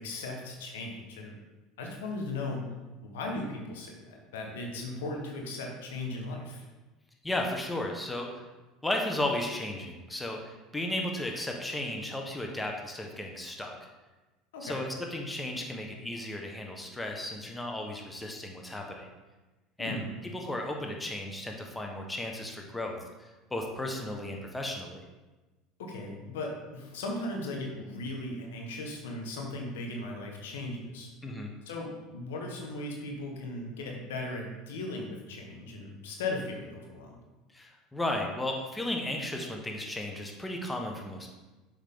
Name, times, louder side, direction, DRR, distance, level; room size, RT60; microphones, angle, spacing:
voice 1, 0.0-1.4 1.8-2.7 3.0-6.6 14.5-14.8 19.8-20.1 25.8-31.1 31.6-37.2, left 2 dB, 80° left, 1 dB, 1.4 m, -37 dB
voice 2, 7.2-8.4 8.8-13.7 14.6-19.1 19.8-25.0 31.2-31.5 37.5-41.3, left 1 dB, 10° left, 1 dB, 1.4 m, -34 dB
7.2 x 5.7 x 3.8 m, 1.2 s
hypercardioid pair, 80°, 0 cm